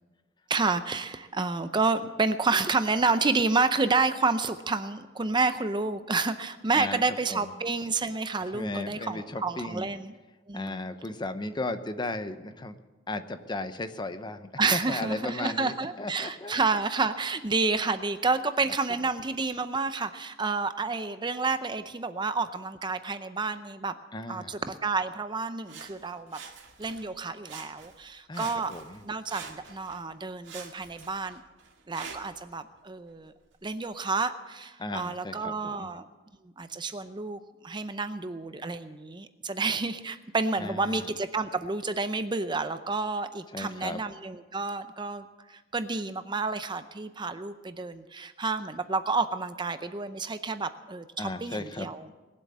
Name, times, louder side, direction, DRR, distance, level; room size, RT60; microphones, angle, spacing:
voice 1, 0.5-10.1 10.5-10.8 14.6-23.9 24.3-26.4 26.8-28.7 29.0-31.4 31.9-33.3 33.6-36.0 36.6-52.1, right 3 dB, 25° right, 11 dB, 0.6 m, -29 dB
voice 2, 8.5-9.9 10.5-12.8 13.1-16.6 24.1-24.6 28.3-29.0 34.8-35.9 40.6-41.1 43.5-44.0 51.2-51.9, left 2 dB, 25° left, 10 dB, 0.8 m, -35 dB
Sawing, 25.7-27.1 27.4-28.1 28.3-30.0 30.4-32.4 33.1-33.2, right 6 dB, 75° right, 2.0 m, -46 dB
20.5 x 7.7 x 8.5 m, 1.2 s
head